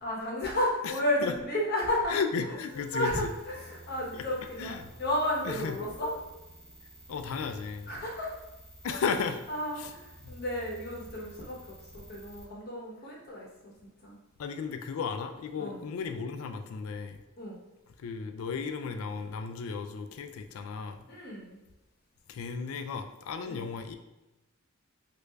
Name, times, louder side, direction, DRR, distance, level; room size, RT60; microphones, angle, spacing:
voice 1, 0.0-2.2 2.9-6.1 7.9-8.3 8.9-9.0 9.5-11.6 11.9-14.2 15.6-15.8 17.4-17.6 21.1-21.6 23.5-23.6, left 1 dB, 45° left, -3 dB, 0.8 m, -32 dB
voice 2, 2.1-3.3 4.1-4.3 4.6-4.9 5.4-5.8 7.1-8.0 8.8-9.4 9.8-9.9 10.2-10.4 14.4-17.2 18.0-21.2 22.3-24.0, left 5 dB, 75° left, 7 dB, 0.3 m, -34 dB
sound 1, 2.7-12.5, right 1 dB, 15° right, 0.7 m, -52 dB
3.2 x 2.5 x 3.3 m, 1.0 s
head